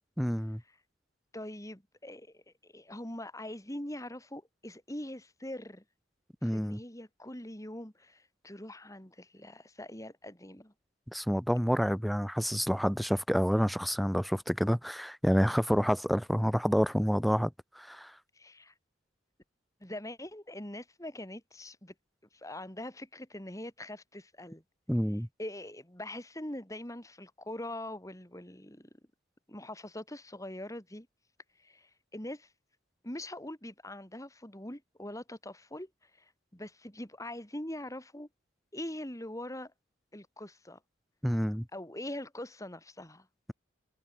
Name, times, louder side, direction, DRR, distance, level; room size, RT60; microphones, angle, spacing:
voice 1, 0.2-0.6 6.4-6.8 11.1-18.1 24.9-25.3 41.2-41.7, equal, ahead, 0.4 m, -28 dB
voice 2, 1.3-5.8 6.4-10.7 18.4-18.7 19.8-21.9 22.3-24.6 25.4-28.9 29.5-31.1 31.6-32.5 33.0-38.3 38.7-39.7 40.1-40.8 41.7-43.3, left 1 dB, 15° left, 3.7 m, -43 dB
head